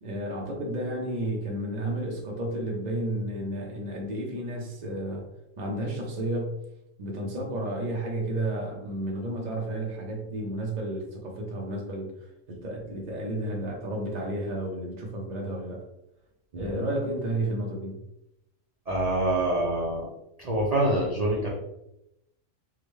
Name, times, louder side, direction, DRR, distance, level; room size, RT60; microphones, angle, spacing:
voice 1, 0.0-5.3 5.6-6.6 7.0-12.1 12.5-15.8 16.6-18.0, right 1 dB, 40° right, 0 dB, 0.6 m, -32 dB
voice 2, 18.9-20.1 20.4-21.5, right 1 dB, 80° right, -4 dB, 0.3 m, -26 dB
3.6 x 2.2 x 3.2 m, 0.85 s
omnidirectional pair, 1.5 m